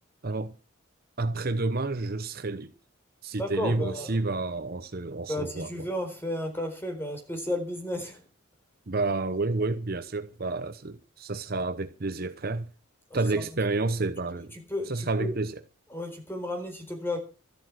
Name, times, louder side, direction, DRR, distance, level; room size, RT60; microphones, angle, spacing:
voice 1, 0.2-0.5 1.2-2.7 3.2-5.7 8.9-12.7 13.1-14.5 14.9-15.5, right 3 dB, 45° right, 0.8 m, -30 dB
voice 2, 3.4-4.2 5.3-8.3 13.1-13.4 14.5-15.3 15.9-17.2, left 1 dB, 10° left, 4.1 m, -33 dB
13.5 x 12.0 x 6.3 m
head